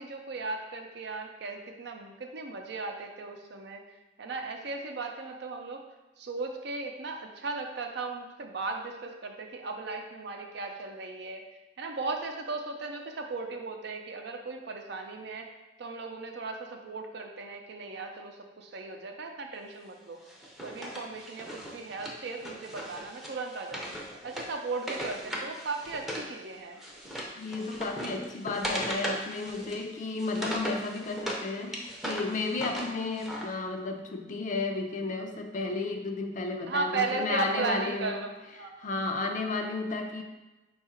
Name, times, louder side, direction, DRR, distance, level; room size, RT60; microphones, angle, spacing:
voice 1, 0.0-3.8 4.2-5.8 6.2-11.4 11.8-15.5 15.8-20.2 20.6-24.0 24.2-26.8 36.7-38.7 39.0-39.5, right 3 dB, 65° right, 3 dB, 0.5 m, -36 dB
Wood, 20.3-26.3 26.6-31.4 31.7-33.5, equal, ahead, 0.6 m, -38 dB
voice 2, 27.4-38.3 38.6-40.2, left 3 dB, 45° left, 4 dB, 0.4 m, -33 dB
4.6 x 2.4 x 4.3 m, 1.1 s
head